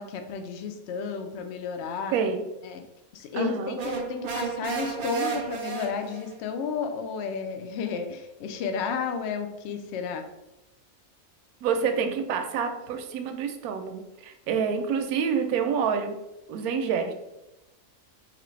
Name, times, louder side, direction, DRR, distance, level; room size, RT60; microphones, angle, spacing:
voice 1, 0.0-2.1 2.6-2.8 3.1-10.3, left 6 dB, 65° left, 6 dB, 0.6 m, -32 dB
voice 2, 2.1-2.4 3.3-3.8 11.6-16.2 16.5-17.1, right 6 dB, 80° right, 6 dB, 1.0 m, -27 dB
sound 1, 3.8-6.4, right 6 dB, 60° right, 0.5 m, -32 dB
4.0 x 2.9 x 3.1 m, 0.95 s
omnidirectional pair, 1.6 m